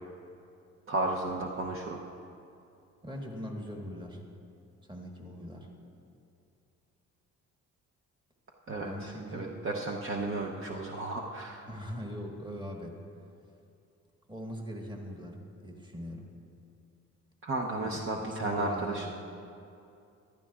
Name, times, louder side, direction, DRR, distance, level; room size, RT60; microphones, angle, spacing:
voice 1, 0.9-2.0 8.7-11.7 17.4-19.1, right 2 dB, 45° right, 0 dB, 0.8 m, -33 dB
voice 2, 3.0-4.2 4.8-5.7 8.8-9.5 11.7-13.0 14.3-16.3 17.8-19.1, equal, 15° right, 1 dB, 1.5 m, -41 dB
14.5 x 11.5 x 2.4 m, 2.6 s
cardioid pair, 90°, 30 cm